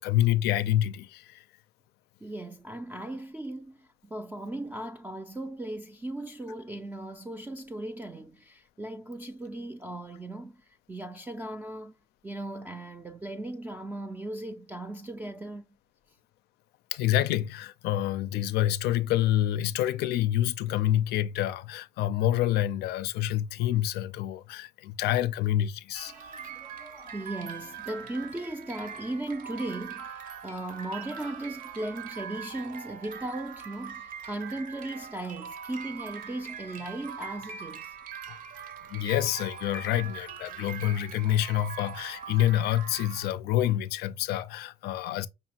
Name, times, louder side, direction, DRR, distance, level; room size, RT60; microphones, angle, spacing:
voice 1, 0.0-1.4 16.9-26.3 38.3-38.4 38.9-45.3, left 13 dB, 75° left, 0.4 m, -27 dB
voice 2, 2.2-11.9 12.2-15.6 26.1-38.0, right 1 dB, 10° right, 0.3 m, -37 dB
sound 1, 25.9-43.3, right 7 dB, 55° right, 0.6 m, -42 dB
5.4 x 2.3 x 2.8 m
cardioid pair, 110°, 17 cm